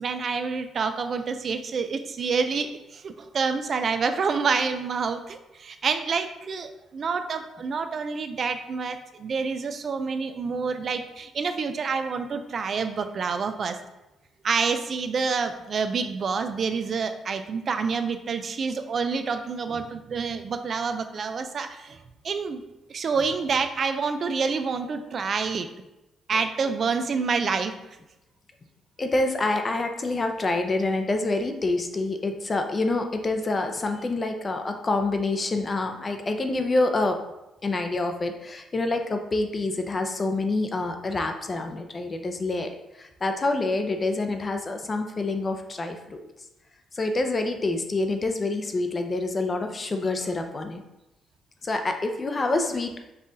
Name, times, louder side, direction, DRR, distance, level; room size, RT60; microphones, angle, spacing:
voice 1, 0.0-13.8 14.4-22.6 22.9-25.7 26.3-27.7 52.5-52.7, right 5 dB, 50° right, 8 dB, 0.4 m, -28 dB
voice 2, 29.0-37.2 37.6-46.2 46.9-50.8 51.6-53.0, left 2 dB, 30° left, 5 dB, 0.6 m, -27 dB
5.5 x 2.4 x 3.9 m, 0.95 s
cardioid pair, 90°, 0 cm